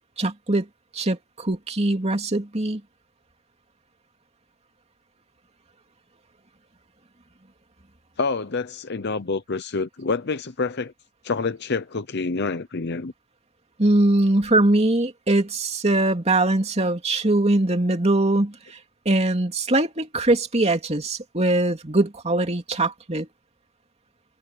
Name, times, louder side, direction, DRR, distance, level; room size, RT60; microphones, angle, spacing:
voice 1, 0.2-0.7 0.9-2.8 13.8-18.5 19.0-23.3, right 2 dB, 30° right, 2.8 m, -21 dB
voice 2, 8.2-10.9 11.2-13.1, left 4 dB, 55° left, 0.8 m, -27 dB
head